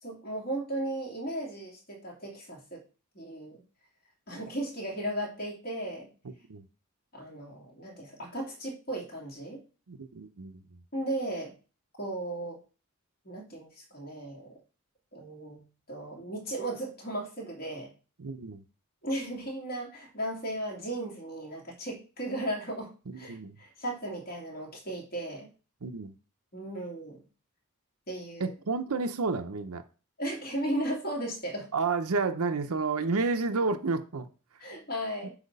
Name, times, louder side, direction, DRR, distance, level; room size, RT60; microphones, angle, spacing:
voice 1, 0.0-2.8 3.1-3.6 4.3-6.1 7.1-9.6 10.9-11.5 12.0-12.6 13.2-14.6 15.1-17.9 19.0-25.5 26.5-27.2 28.1-28.5 30.2-31.7 34.6-35.3, right 1 dB, 45° left, 2.6 m, -36 dB
voice 2, 6.2-6.7 9.9-10.8 18.2-18.6 23.1-23.6 25.8-26.1 28.4-29.8 31.7-34.3 35.2-35.3, right 4 dB, 85° right, 0.7 m, -31 dB
8.0 x 2.9 x 5.4 m
head